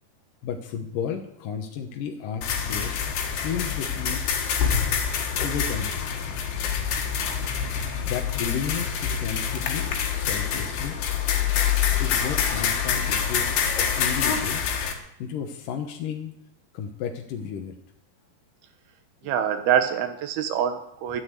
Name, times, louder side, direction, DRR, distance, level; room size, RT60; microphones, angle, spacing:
voice 1, 0.4-4.5 5.4-6.3 7.8-11.0 12.0-13.5 13.7-16.3 16.7-17.8, left 7 dB, 70° left, 3 dB, 2.6 m, -33 dB
sound 1, 2.4-14.9, left 7 dB, 90° left, 3.6 m, -26 dB
voice 2, 19.2-21.2, right 9 dB, 85° right, 7 dB, 3.2 m, -25 dB
12.5 x 9.7 x 8.2 m, 0.77 s
omnidirectional pair, 4.4 m